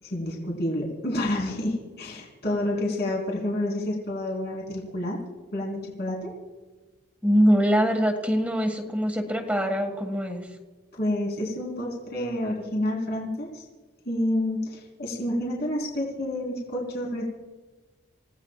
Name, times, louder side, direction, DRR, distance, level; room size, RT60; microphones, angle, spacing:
voice 1, 0.0-5.2 5.5-6.3 10.9-13.7 14.1-17.3, left 1 dB, 50° left, -3 dB, 4.1 m, -29 dB
voice 2, 7.2-10.5, equal, 5° right, 3 dB, 1.8 m, -23 dB
29.5 x 17.0 x 2.5 m, 1.3 s
head